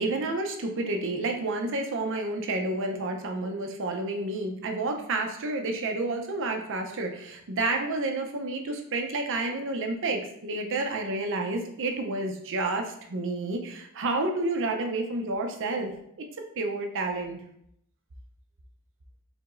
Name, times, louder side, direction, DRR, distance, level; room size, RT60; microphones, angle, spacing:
voice 1, 0.0-15.9 16.2-16.3 16.6-17.4, right 2 dB, 60° right, 3 dB, 0.6 m, -30 dB
4.7 x 3.5 x 2.5 m, 0.72 s
head